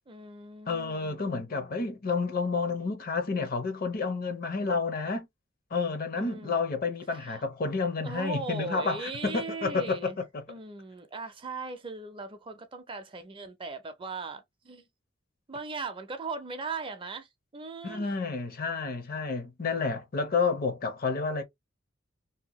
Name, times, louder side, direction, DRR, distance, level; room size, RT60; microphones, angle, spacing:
voice 1, 0.1-1.9 6.2-6.6 7.1-7.5 8.0-10.2 10.5-14.8 15.5-17.3 17.5-18.1, right 3 dB, 25° right, 0.5 m, -39 dB
voice 2, 0.7-5.3 5.7-10.4 17.8-21.4, left 4 dB, 50° left, 0.7 m, -30 dB
2.8 x 2.1 x 2.9 m
head